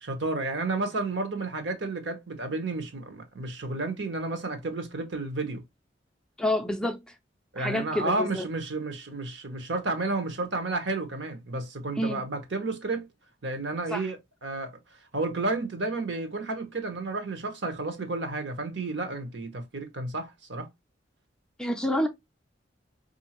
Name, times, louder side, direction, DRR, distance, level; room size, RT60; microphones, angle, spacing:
voice 1, 0.0-5.6 7.5-13.1 13.4-14.8 15.1-20.7, right 2 dB, 65° right, 0.9 m, -31 dB
voice 2, 6.4-7.0 7.6-8.4 12.0-12.2 13.9-14.1 21.6-22.1, left 1 dB, 5° left, 0.4 m, -28 dB
4.1 x 2.6 x 2.9 m
head